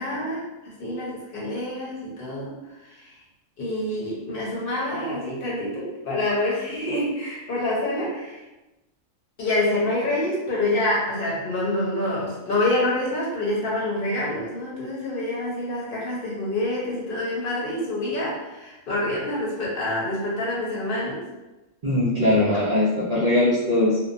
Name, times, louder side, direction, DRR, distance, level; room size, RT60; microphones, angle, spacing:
voice 1, 0.0-3.2 3.6-8.4 9.4-21.2, left 1 dB, 50° left, -5 dB, 0.9 m, -27 dB
voice 2, 21.8-24.0, left 1 dB, 80° right, -8 dB, 0.3 m, -20 dB
2.8 x 2.1 x 2.5 m, 1.0 s
omnidirectional pair, 1.4 m